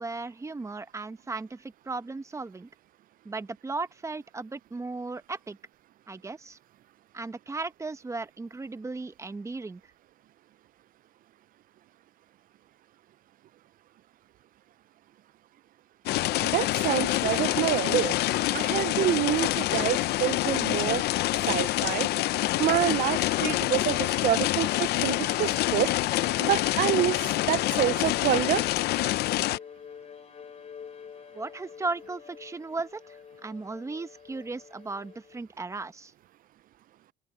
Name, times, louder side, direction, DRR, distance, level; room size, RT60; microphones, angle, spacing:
voice 1, 0.0-2.7 3.2-5.6 6.1-6.6 7.1-9.8 31.3-36.1, right 3 dB, 15° right, 1.0 m, -36 dB
sound 1, 16.1-29.6, left 16 dB, 75° left, 0.6 m, -26 dB
voice 2, 16.4-18.2 18.5-21.0 21.5-22.1 22.6-25.9 26.4-28.6, right 13 dB, 55° right, 0.5 m, -27 dB
Bowed string instrument, 27.0-35.4, left 7 dB, 40° left, 5.5 m, -48 dB
cardioid pair, 110°, 17 cm